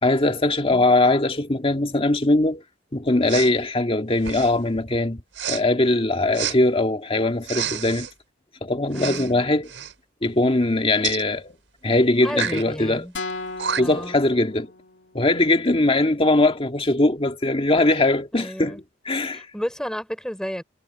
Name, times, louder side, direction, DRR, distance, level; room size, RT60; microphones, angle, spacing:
voice 1, 0.0-2.6 2.9-5.2 5.5-8.1 8.6-9.7 10.2-11.6 11.8-13.1 13.8-14.7 15.1-18.8 19.1-19.5, left 2 dB, 30° left, 1.9 m, -21 dB
Respiratory sounds, 3.3-3.5 4.2-4.6 5.3-5.6 6.3-6.6 7.4-8.1 8.9-9.3 9.6-9.9 11.0-11.2 12.3-12.6 13.3-13.4 13.6-14.1, right 8 dB, 90° right, 5.0 m, -29 dB
voice 2, 8.9-9.4 12.2-13.1 13.8-14.2 18.3-18.8 19.3-20.6, equal, 5° left, 4.3 m, -32 dB
sound 1, 13.1-15.2, left 3 dB, 75° left, 3.0 m, -35 dB
head